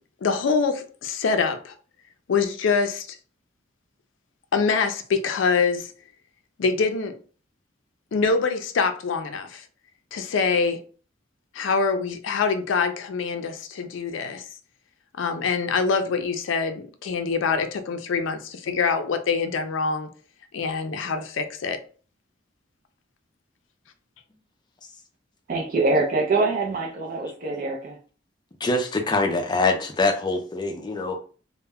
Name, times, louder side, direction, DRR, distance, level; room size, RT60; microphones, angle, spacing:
voice 1, 0.2-1.7 2.3-3.2 4.5-5.9 6.6-7.2 8.1-9.6 10.1-10.8 11.5-14.5 15.2-20.1 20.5-21.8, left 5 dB, 85° left, 0.4 m, -25 dB
voice 2, 25.5-28.0, right 3 dB, 50° right, 0.4 m, -24 dB
voice 3, 28.6-31.2, left 3 dB, 25° left, 0.4 m, -24 dB
2.1 x 2.0 x 3.4 m
head